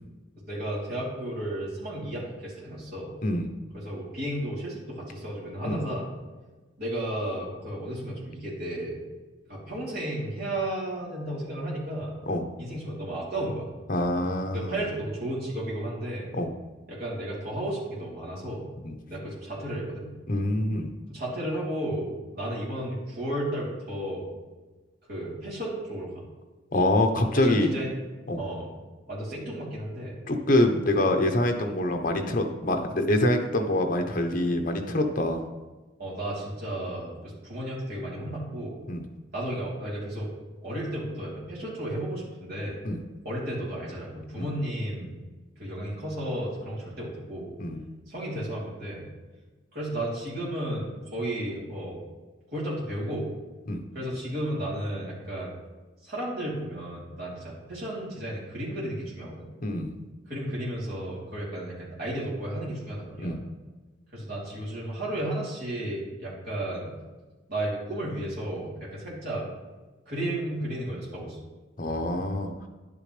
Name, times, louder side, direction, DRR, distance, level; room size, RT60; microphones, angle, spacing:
voice 1, 0.4-3.1 3.7-6.1 6.8-9.0 9.5-12.1 12.6-13.7 14.5-16.3 16.9-18.7 19.1-20.1 21.1-24.3 25.1-26.2 27.4-27.9 28.4-28.7 29.1-30.2 36.0-38.8 39.3-40.3 40.6-42.8 43.2-45.2 45.6-47.5 48.1-49.1 49.7-52.0 52.5-53.3 53.9-55.5 56.0-59.4 60.3-63.4 64.1-67.0 67.5-69.5 70.1-71.4, right 1 dB, 55° right, -7 dB, 3.5 m, -33 dB
voice 2, 13.9-14.8 16.3-16.5 18.8-18.9 20.3-20.9 26.7-27.7 28.3-28.4 30.3-35.4 38.9-39.0 42.8-43.0 44.4-44.5 47.6-47.8 53.7-53.8 59.6-60.0 63.2-63.4 71.8-72.5, left 1 dB, 45° left, 5 dB, 1.0 m, -25 dB
11.0 x 8.8 x 3.4 m, 1.2 s
head